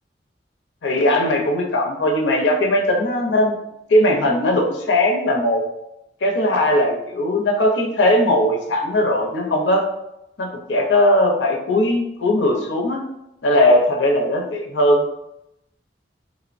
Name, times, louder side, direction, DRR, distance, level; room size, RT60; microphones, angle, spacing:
voice 1, 0.8-3.6 3.9-5.6 6.2-9.8 10.4-13.0 13.4-15.0, left 1 dB, 80° left, 1 dB, 0.6 m, -18 dB
3.0 x 2.0 x 2.4 m, 0.85 s
head